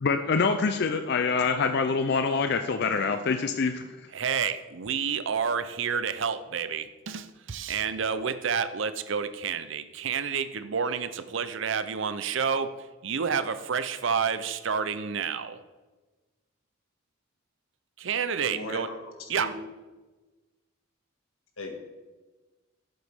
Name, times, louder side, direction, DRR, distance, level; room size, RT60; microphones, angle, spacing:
voice 1, 0.0-3.7, left 4 dB, 55° left, 7 dB, 0.4 m, -25 dB
voice 2, 4.1-15.6 18.0-18.9 19.3-19.6, right 6 dB, 60° right, 12 dB, 0.6 m, -29 dB
voice 3, 18.5-19.0 19.4-19.5 21.6-21.9, left 2 dB, 85° left, 2 dB, 1.8 m, -37 dB
12.0 x 7.9 x 3.5 m, 1.2 s
head